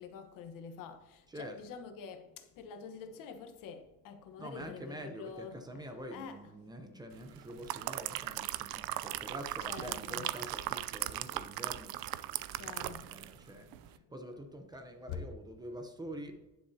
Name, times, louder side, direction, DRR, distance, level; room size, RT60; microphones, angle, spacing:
voice 1, 0.0-6.5 9.0-9.2 9.6-10.3 11.5-11.7 12.5-14.6 15.1-15.2 16.3-16.4, left 6 dB, 65° left, 7 dB, 1.2 m, -48 dB
voice 2, 1.3-1.6 4.4-16.4, equal, 10° right, 5 dB, 0.7 m, -46 dB
sound 1, 7.3-13.4 13.7-13.9, right 15 dB, 85° right, 0.6 m, -38 dB
10.5 x 10.5 x 2.8 m, 1.0 s
cardioid pair, 170°, 35 cm